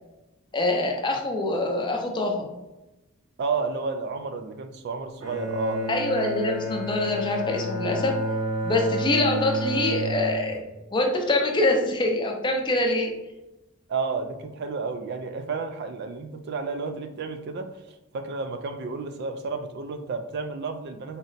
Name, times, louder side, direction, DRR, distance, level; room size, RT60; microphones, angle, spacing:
voice 1, 0.5-2.5 5.9-8.2 8.6-10.6 10.9-13.1, left 2 dB, 20° left, 2 dB, 0.5 m, -25 dB
voice 2, 3.4-5.9 13.9-21.2, right 4 dB, 50° right, 8 dB, 0.3 m, -31 dB
Bowed string instrument, 5.2-10.7, right 1 dB, 80° right, 1.4 m, -29 dB
4.0 x 2.1 x 3.9 m, 1.0 s
head